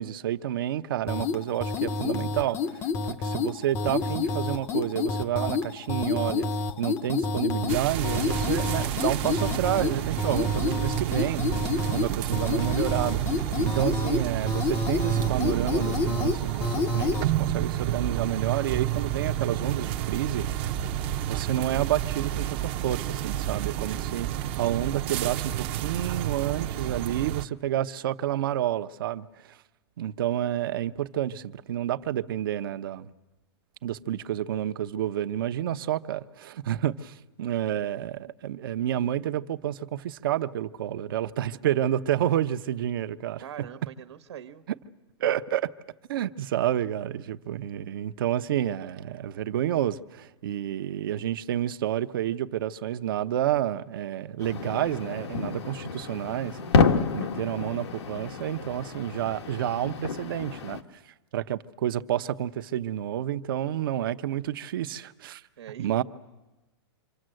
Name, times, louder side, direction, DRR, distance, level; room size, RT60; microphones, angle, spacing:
voice 1, 0.0-6.5 6.8-11.6 11.9-20.7 21.2-24.3 24.6-29.6 30.0-33.1 33.8-43.4 45.2-45.7 46.1-56.6 57.1-60.8 61.3-65.4 65.8-66.0, right 11 dB, 55° right, 1.0 m, -29 dB
sound 1, 1.1-17.3, left 4 dB, 20° left, 0.8 m, -29 dB
sound 2, 7.7-27.4, right 12 dB, 30° right, 0.8 m, -30 dB
voice 2, 43.4-44.7 65.6-65.9, right 10 dB, 80° right, 1.4 m, -42 dB
sound 3, 54.4-60.8, left 4 dB, 80° left, 1.8 m, -29 dB
27.0 x 26.0 x 7.8 m
hypercardioid pair, 165°, 14 cm